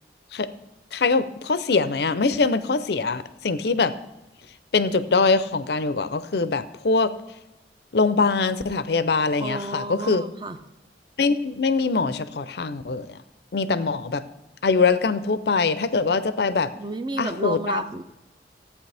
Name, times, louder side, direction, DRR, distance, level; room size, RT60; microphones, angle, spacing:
voice 1, 0.9-4.0 4.7-7.1 7.9-10.2 11.2-13.2 13.5-14.2 14.6-16.7 17.2-17.8, left 4 dB, 65° left, 14 dB, 0.5 m, -23 dB
voice 2, 9.4-10.6 16.7-18.0, right 2 dB, 25° right, 10 dB, 0.5 m, -31 dB
14.5 x 8.4 x 3.4 m, 1.0 s
head